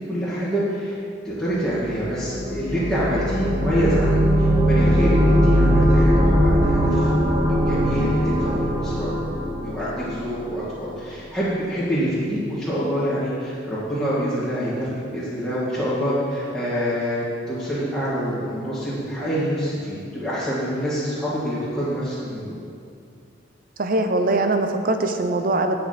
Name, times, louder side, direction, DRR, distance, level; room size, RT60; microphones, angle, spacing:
voice 1, 0.1-7.4 7.7-9.3 9.6-22.6, equal, ahead, -14 dB, 2.6 m, -26 dB
sound 1, 1.6-10.5, equal, 20° right, 1.4 m, -20 dB
voice 2, 23.8-25.8, right 2 dB, 50° right, 6 dB, 0.8 m, -22 dB
10.0 x 8.1 x 5.9 m, 2.3 s
head